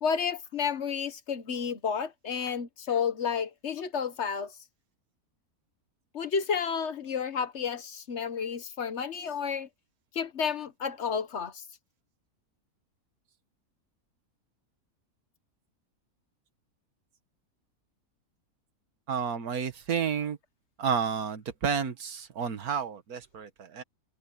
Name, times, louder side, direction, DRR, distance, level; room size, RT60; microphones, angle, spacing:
voice 1, 0.0-4.5 6.1-9.7 10.1-11.6, left 6 dB, 50° left, 1.4 m, -31 dB
voice 2, 19.1-20.4 20.8-23.8, right 7 dB, 75° right, 1.9 m, -31 dB
open air
omnidirectional pair, 1.6 m